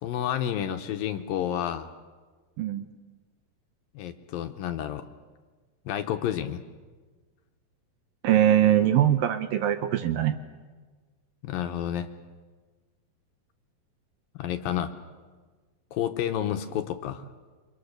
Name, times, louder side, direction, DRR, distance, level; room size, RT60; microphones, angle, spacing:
voice 1, 0.0-1.9 3.9-5.1 5.9-6.6 11.4-12.1 14.4-14.9 15.9-17.2, left 10 dB, 75° left, 7 dB, 2.4 m, -30 dB
voice 2, 8.2-10.4, right 11 dB, 75° right, 9 dB, 2.3 m, -22 dB
28.5 x 25.5 x 6.7 m, 1.4 s
omnidirectional pair, 4.7 m